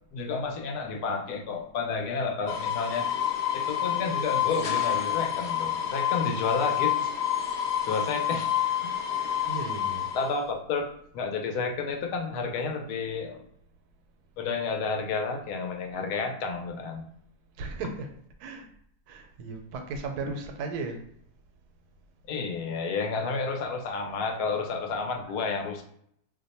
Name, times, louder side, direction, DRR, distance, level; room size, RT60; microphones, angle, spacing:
voice 1, 0.1-3.1 3.5-7.0 7.9-9.3 10.1-13.4 14.4-17.0 20.2-20.3 22.3-25.8, left 4 dB, 80° left, 3 dB, 1.1 m, -31 dB
sound 1, 2.5-10.4, left 10 dB, 60° left, 0.8 m, -28 dB
voice 2, 9.5-10.1 17.6-18.1 18.4-18.7 19.1-21.0, right 4 dB, 85° right, 4 dB, 1.1 m, -36 dB
2.8 x 2.1 x 4.0 m, 0.67 s
omnidirectional pair, 1.6 m